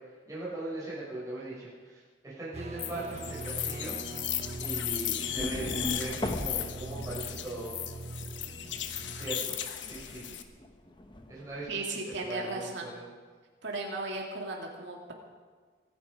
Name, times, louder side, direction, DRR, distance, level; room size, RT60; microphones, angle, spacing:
voice 1, 0.3-3.9 4.6-7.7 9.1-10.3 11.3-11.8 12.2-13.1, right 2 dB, 20° right, -8 dB, 6.2 m, -40 dB
sound 1, 2.5-9.4, right 2 dB, 35° right, 0.7 m, -42 dB
sound 2, 2.8-10.4, left 11 dB, 85° left, 1.1 m, -36 dB
sound 3, 4.4-9.2 9.5-11.8, left 1 dB, 25° left, 1.1 m, -40 dB
voice 2, 11.7-12.9 13.6-15.1, right 3 dB, 80° right, 0 dB, 2.4 m, -36 dB
24.5 x 10.5 x 5.1 m, 1.5 s
head